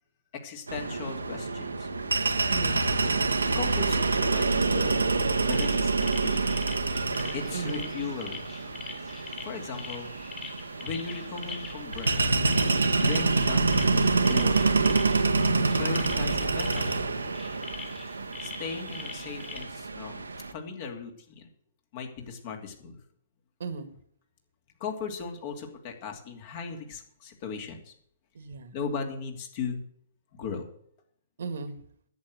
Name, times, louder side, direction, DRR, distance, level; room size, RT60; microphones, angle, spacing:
voice 1, 0.4-1.9 3.5-4.9 5.5-6.6 7.3-8.5 9.2-10.1 10.8-12.3 13.0-14.6 15.8-17.4 18.4-20.2 20.5-21.5 21.9-23.0 24.8-27.9 28.7-29.8 30.3-30.7, left 5 dB, 45° left, 3 dB, 2.8 m, -37 dB
sound 1, 0.7-20.5, right 3 dB, 80° right, 1.2 m, -27 dB
sound 2, 5.5-19.6, left 5 dB, 20° left, 2.5 m, -43 dB
voice 2, 7.5-7.9 14.7-15.0 23.6-23.9 28.3-28.7 31.4-31.8, right 4 dB, 65° right, 11 dB, 1.6 m, -35 dB
11.0 x 8.2 x 7.9 m, 0.67 s
figure-of-eight pair, 120°, 0 cm